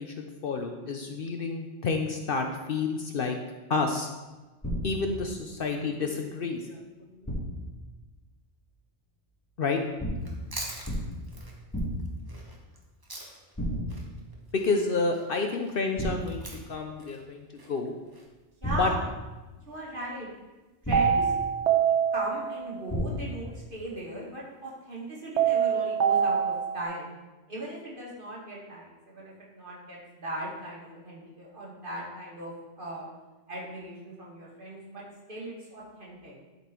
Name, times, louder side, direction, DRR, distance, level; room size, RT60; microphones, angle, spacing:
voice 1, 0.0-3.4 3.7-4.1 4.8-6.8 7.1-7.2 9.6-9.8 14.5-17.9 18.8-18.9, left 4 dB, 55° left, 4 dB, 0.7 m, -30 dB
sound 1, 4.6-5.2 7.2-7.7 10.0-10.4 10.8-11.3 11.7-12.2 13.6-14.1 16.0-16.5 18.6-19.3 20.8-21.4 22.9-23.5, equal, 15° left, 1.4 m, -32 dB
Chewing mastication, 10.2-13.6 13.9-18.2, right 1 dB, 20° right, 1.0 m, -44 dB
voice 2, 18.6-19.0 19.7-20.3 20.9-21.3 21.9-27.1 27.5-33.1 33.5-35.0 35.3-36.4, right 1 dB, 45° right, -5 dB, 2.2 m, -38 dB
sound 2, 20.9-22.8 25.4-26.8, right 8 dB, 75° right, 1.1 m, -25 dB
11.0 x 4.3 x 4.4 m, 1.2 s
omnidirectional pair, 1.2 m